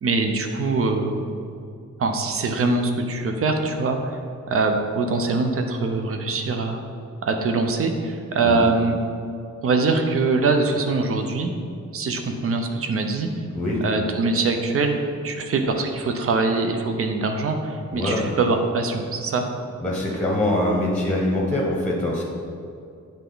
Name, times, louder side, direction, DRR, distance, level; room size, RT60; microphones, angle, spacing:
voice 1, 0.0-1.2 2.0-4.2 4.5-6.8 7.2-9.0 9.6-11.5 11.9-13.3 13.8-15.0 15.2-19.5, right 3 dB, 50° right, 4 dB, 0.6 m, -23 dB
voice 2, 19.8-22.2, left 1 dB, 5° left, -3 dB, 0.9 m, -23 dB
8.8 x 3.4 x 3.9 m, 2.4 s
wide cardioid pair, 175°, 30 cm